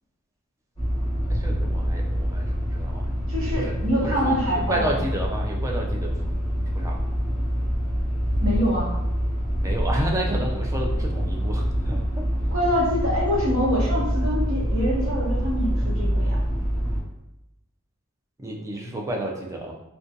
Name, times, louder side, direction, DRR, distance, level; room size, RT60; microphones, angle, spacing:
sound 1, 0.8-17.0, equal, 20° left, 1.0 m, -26 dB
voice 1, 1.3-3.1 3.5-6.3 6.8-7.1 9.6-12.3 18.4-19.7, right 1 dB, 15° right, -1 dB, 0.3 m, -31 dB
voice 2, 3.3-5.0 8.4-9.0 12.5-16.4, equal, 70° right, -6 dB, 1.0 m, -25 dB
2.5 x 2.2 x 2.6 m, 0.90 s
head